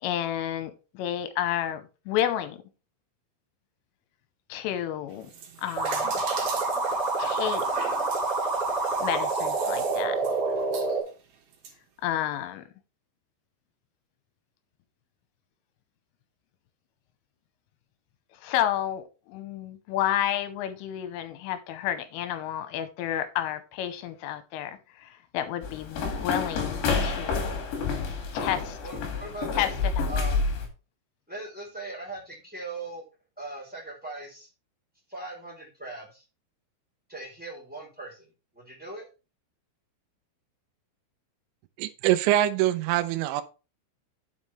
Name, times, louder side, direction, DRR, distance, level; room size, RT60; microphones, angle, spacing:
voice 1, 0.0-2.6 4.5-5.3 5.6-6.2 7.2-7.9 9.0-10.2 12.0-12.7 18.4-27.6 28.3-28.8 29.5-30.1, left 11 dB, 85° left, 10 dB, 3.4 m, -31 dB
sound 1, 5.1-11.7, right 7 dB, 60° right, 3.1 m, -40 dB
sound 2, 5.8-11.0, right 3 dB, 25° right, 2.7 m, -27 dB
sound 3, 25.6-30.7, left 4 dB, 65° left, 4.0 m, -29 dB
voice 2, 28.8-29.7 30.1-30.5 31.3-33.0 33.4-34.5 35.1-36.2 37.1-38.3 38.5-39.1, right 2 dB, 5° right, -2 dB, 2.1 m, -39 dB
voice 3, 41.8-43.4, right 13 dB, 80° right, 9 dB, 2.7 m, -24 dB
9.5 x 7.4 x 3.2 m, 0.32 s
omnidirectional pair, 5.9 m